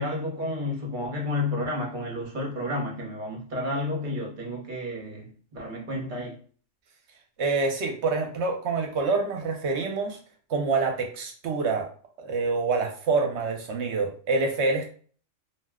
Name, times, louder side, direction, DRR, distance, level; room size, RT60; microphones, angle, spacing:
voice 1, 0.0-6.4, left 1 dB, 45° right, 1.0 m, -31 dB
voice 2, 7.4-10.2 10.5-11.9 12.2-14.9, right 4 dB, 70° right, 0.9 m, -26 dB
2.6 x 2.1 x 3.5 m
omnidirectional pair, 1.3 m